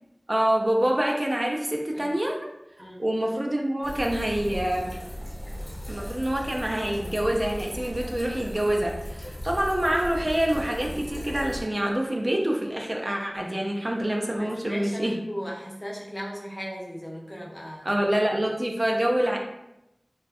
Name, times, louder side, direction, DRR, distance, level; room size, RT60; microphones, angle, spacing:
voice 1, 0.3-2.5 3.0-4.9 5.9-15.2 17.8-19.4, right 1 dB, 40° right, 0 dB, 0.4 m, -26 dB
sound 1, 3.8-11.6, equal, 85° left, 0.9 m, -37 dB
voice 2, 14.4-17.9, equal, 35° left, -2 dB, 0.5 m, -37 dB
2.6 x 2.2 x 2.3 m, 0.87 s
wide cardioid pair, 45°, 0 cm